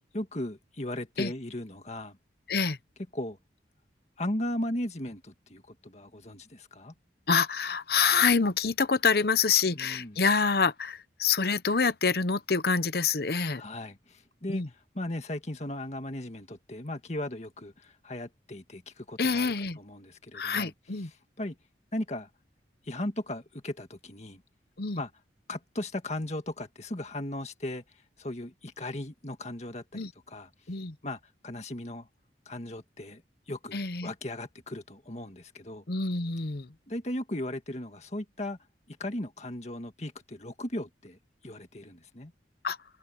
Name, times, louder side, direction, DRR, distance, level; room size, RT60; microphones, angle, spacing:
voice 1, 0.0-2.2 3.1-3.4 4.2-6.9 9.8-10.2 13.5-20.7 21.4-21.6 21.9-22.3 22.8-24.4 24.9-25.1 25.5-30.5 31.0-32.1 32.5-33.2 33.5-35.8 36.9-38.6 38.9-42.3, left 1 dB, 40° left, 1.9 m, -37 dB
voice 2, 7.3-13.6 14.5-14.7 19.2-19.8 20.3-21.1 24.8-25.0 29.9-30.1 30.7-31.0 33.7-34.1 35.9-36.7 42.6-42.8, left 5 dB, 60° left, 0.9 m, -26 dB
head